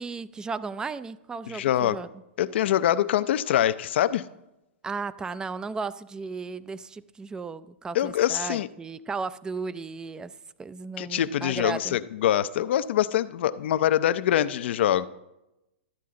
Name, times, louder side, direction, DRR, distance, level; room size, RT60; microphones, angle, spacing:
voice 1, 0.0-2.1 4.8-10.3 10.6-12.0, right 4 dB, 10° right, 16 dB, 0.4 m, -35 dB
voice 2, 1.5-2.0 2.4-4.2 7.9-8.7 11.0-15.1, left 11 dB, 65° left, 14 dB, 0.5 m, -24 dB
12.5 x 8.4 x 3.8 m, 0.94 s
hypercardioid pair, 125°, 6 cm